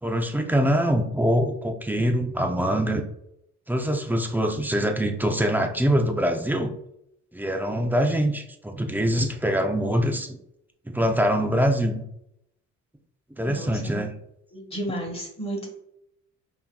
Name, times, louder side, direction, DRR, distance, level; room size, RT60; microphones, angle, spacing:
voice 1, 0.0-3.0 3.7-6.7 7.3-10.4 10.9-12.0 13.4-14.1, equal, 5° right, 4 dB, 0.5 m, -24 dB
voice 2, 13.4-14.0 14.5-15.7, right 1 dB, 20° left, 1 dB, 1.4 m, -33 dB
5.5 x 2.8 x 2.3 m, 0.77 s
cardioid pair, 90°, 30 cm